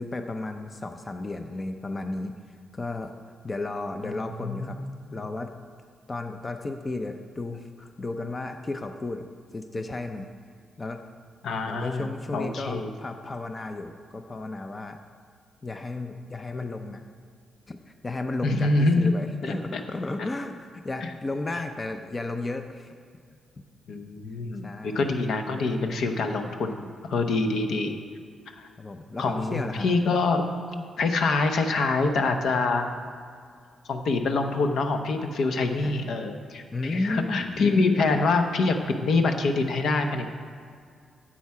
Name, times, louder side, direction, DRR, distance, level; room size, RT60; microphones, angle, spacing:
voice 1, 0.0-3.1 3.4-4.8 5.1-5.5 6.1-9.2 9.5-10.3 10.8-11.0 11.7-15.0 15.6-17.1 17.7-22.9 24.6-25.1 28.8-29.9 35.8-35.9 36.7-37.6 38.1-38.2, left 2 dB, 25° left, 6 dB, 0.5 m, -33 dB
voice 2, 4.4-4.8 11.4-12.1 12.3-12.9 18.4-19.1 19.4-19.8 20.2-20.3 21.0-21.1 23.9-27.9 28.6-28.7 29.2-30.5 30.7-32.9 33.9-40.3, left 3 dB, 70° left, 5 dB, 0.8 m, -25 dB
10.0 x 7.4 x 4.8 m, 2.2 s
cardioid pair, 115°, 0 cm